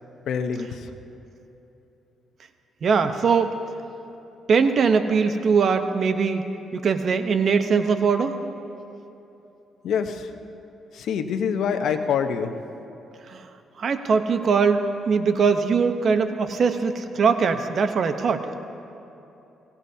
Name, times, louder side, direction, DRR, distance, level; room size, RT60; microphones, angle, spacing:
voice 1, 0.3-0.8 9.8-10.3 10.9-12.5, left 7 dB, 75° left, 6 dB, 0.9 m, -25 dB
voice 2, 2.8-3.5 4.5-6.4 6.7-8.3 13.3-13.4 13.8-18.5, right 5 dB, 55° right, 8 dB, 0.9 m, -21 dB
22.5 x 17.5 x 2.8 m, 3.0 s
cardioid pair, 90°, 0 cm